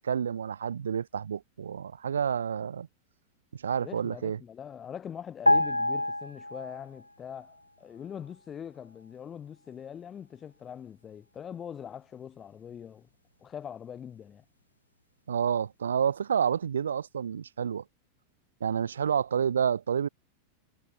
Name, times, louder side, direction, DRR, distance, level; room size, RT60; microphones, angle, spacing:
voice 1, 0.0-2.9 3.5-4.4 15.3-17.8 18.6-20.1, right 7 dB, 70° right, 3.1 m, -29 dB
voice 2, 3.8-13.1 13.4-14.4, left 8 dB, 25° left, 5.0 m, -43 dB
sound 1, 5.5-7.1 7.4-7.6, left 1 dB, 85° left, 1.1 m, -26 dB
figure-of-eight pair, 90°, 0 cm